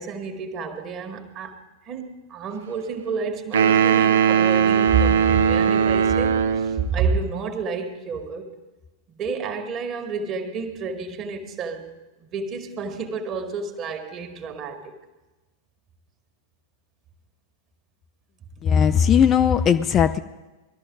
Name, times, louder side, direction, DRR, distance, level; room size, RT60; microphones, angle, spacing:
voice 1, 0.0-8.5 9.1-11.9 12.2-14.9, right 5 dB, 35° right, 5 dB, 1.9 m, -29 dB
sound 1, 3.5-6.9, right 7 dB, 60° right, 0.7 m, -19 dB
voice 2, 18.6-20.2, left 8 dB, 30° left, 10 dB, 0.5 m, -18 dB
20.5 x 13.0 x 3.9 m, 1.2 s
figure-of-eight pair, 90°, 0 cm